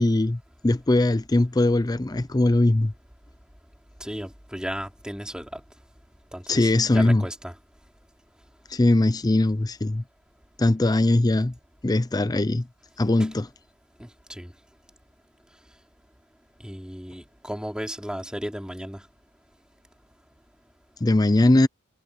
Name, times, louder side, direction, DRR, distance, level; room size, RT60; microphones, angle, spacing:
voice 1, 0.0-2.9 6.5-7.2 8.7-10.0 10.6-11.5 11.8-12.7 13.0-13.5 21.0-21.7, left 2 dB, 15° left, 0.5 m, -21 dB
voice 2, 4.0-5.6 6.3-7.5 13.2-13.3 14.0-14.5 16.6-19.0, equal, 5° right, 3.0 m, -35 dB
head